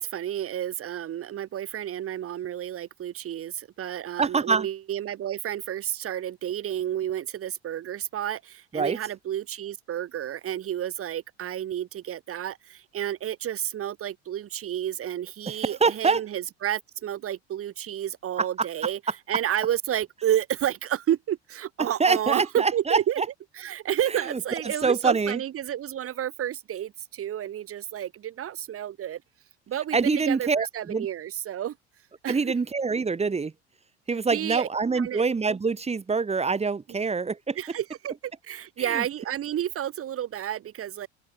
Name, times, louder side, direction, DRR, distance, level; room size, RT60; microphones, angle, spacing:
voice 1, 0.0-19.0 19.3-23.2 23.5-29.2 29.7-31.8 32.2-32.5 34.3-34.7 35.0-35.2 37.5-41.1, right 11 dB, 40° right, 6.7 m, -31 dB
voice 2, 4.2-4.7 8.7-9.0 15.8-16.2 18.4-18.5 21.8-23.3 24.3-24.4 24.8-25.4 29.9-31.1 32.3-33.5 34.1-37.6 38.8-39.0, right 4 dB, 20° right, 2.4 m, -25 dB
open air
figure-of-eight pair, 65°, 33 cm